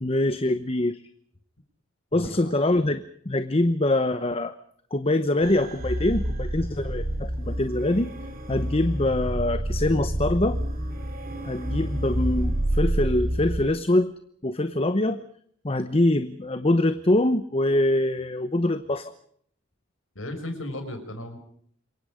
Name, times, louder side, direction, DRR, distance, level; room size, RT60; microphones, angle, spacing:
voice 1, 0.0-1.0 2.1-4.6 4.9-8.1 8.5-10.6 11.4-14.1 14.4-15.2 15.6-19.1, left 1 dB, 30° left, 11 dB, 0.9 m, -24 dB
sound 1, 5.4-13.7, right 1 dB, 45° right, 4.1 m, -28 dB
voice 2, 20.1-21.4, left 1 dB, 80° left, 6 dB, 5.9 m, -35 dB
27.5 x 23.0 x 5.1 m, 0.63 s
head